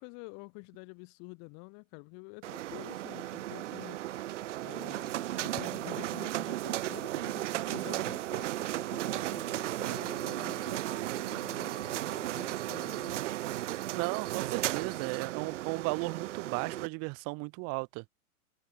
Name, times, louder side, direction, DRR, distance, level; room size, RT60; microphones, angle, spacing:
voice 1, 0.0-4.0 4.6-13.2, left 35 dB, 35° left, 5.4 m, -48 dB
sound 1, 2.4-16.9, right 14 dB, 55° right, 4.6 m, -35 dB
voice 2, 13.9-18.0, right 32 dB, 35° right, 1.9 m, -35 dB
hypercardioid pair, 120°, 44 cm